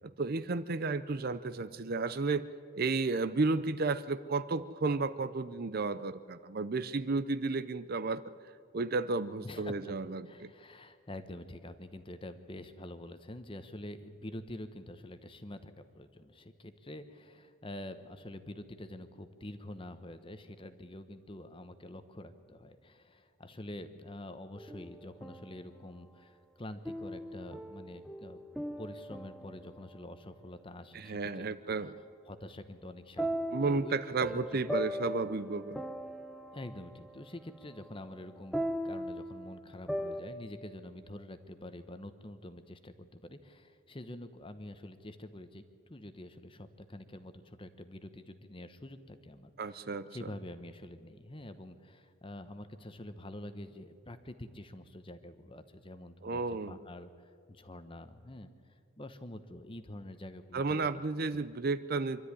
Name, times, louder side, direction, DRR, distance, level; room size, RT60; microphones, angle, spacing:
voice 1, 0.2-2.5 2.7-8.2 8.7-10.5 30.9-31.9 33.5-35.8 49.6-50.3 56.2-56.8 60.5-62.3, right 3 dB, 45° right, 14 dB, 0.6 m, -33 dB
voice 2, 9.4-9.7 10.3-28.4 28.8-31.6 32.3-34.0 34.5-34.6 36.5-38.6 38.8-49.8 50.1-58.5 59.0-60.9 61.3-61.4, left 1 dB, 25° left, 10 dB, 1.0 m, -46 dB
sound 1, 24.5-25.8 26.9-30.1 33.2-40.2, equal, ahead, 0.9 m, -39 dB
24.5 x 12.5 x 9.8 m, 2.3 s
head